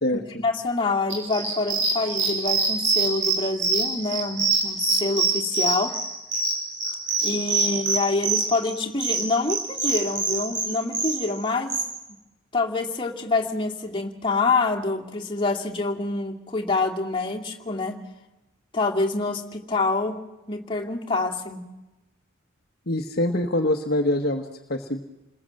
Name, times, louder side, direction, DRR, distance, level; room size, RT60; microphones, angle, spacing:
voice 1, 0.4-6.0 7.2-11.8 12.5-18.0 18.7-20.2 20.5-21.6, left 3 dB, 25° left, 1 dB, 2.2 m, -26 dB
sound 1, 1.1-11.8, right 4 dB, 55° right, 7.0 m, -24 dB
voice 2, 22.9-25.0, left 1 dB, 50° left, 5 dB, 1.3 m, -24 dB
28.5 x 20.5 x 7.7 m, 1.0 s
head